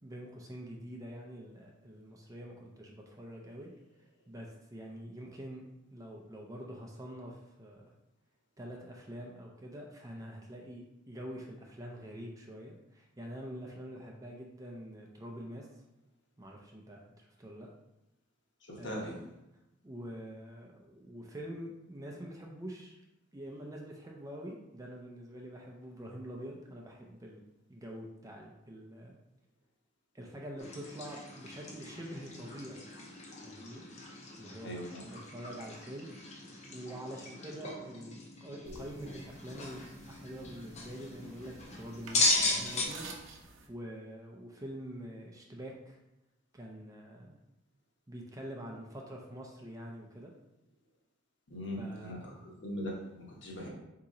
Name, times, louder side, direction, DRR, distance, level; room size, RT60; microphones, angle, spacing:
voice 1, 0.0-3.7 4.3-5.6 5.9-7.8 8.6-15.7 16.4-17.7 18.8-19.3 19.8-23.0 23.3-27.4 27.7-29.2 30.1-32.9 33.4-33.8 34.4-34.8 35.0-36.2 36.7-46.0 46.5-47.4 48.1-50.3 51.8-52.4, equal, 15° right, 0 dB, 0.5 m, -45 dB
voice 2, 18.7-19.2 34.6-35.0 51.5-53.7, equal, 60° left, -2 dB, 1.0 m, -40 dB
sound 1, 30.6-42.9, left 2 dB, 35° left, 0.6 m, -37 dB
sound 2, 38.6-43.7, right 3 dB, 75° right, 0.6 m, -51 dB
4.2 x 2.8 x 3.7 m, 0.92 s
head